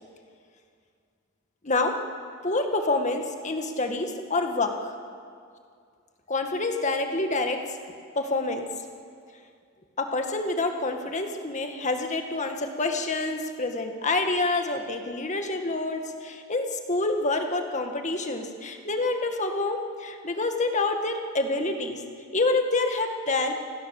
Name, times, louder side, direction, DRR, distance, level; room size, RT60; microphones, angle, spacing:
voice 1, 1.6-2.0 2.4-5.0 6.3-7.8 8.2-8.6 10.0-22.0 22.3-23.5, left 2 dB, 35° left, 5 dB, 1.9 m, -27 dB
29.5 x 19.5 x 7.3 m, 2.3 s
head